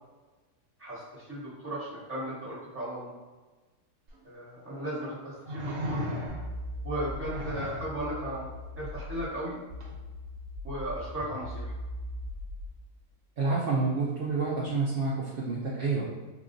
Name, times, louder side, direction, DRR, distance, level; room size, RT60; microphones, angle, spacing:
voice 1, 0.8-3.1 4.2-6.0 6.8-8.5 8.8-9.6 10.6-11.7, right 1 dB, 10° right, -8 dB, 1.1 m, -36 dB
sound 1, 4.1-4.2 5.4-6.6 7.2-7.9 9.8-9.9, equal, 80° right, 1.2 m, -35 dB
sound 2, 6.3-9.3 9.7-12.7, left 1 dB, 45° right, 0.9 m, -39 dB
voice 2, 13.4-16.1, right 3 dB, 60° right, -6 dB, 0.6 m, -28 dB
3.6 x 2.3 x 2.5 m, 1.2 s
omnidirectional pair, 1.5 m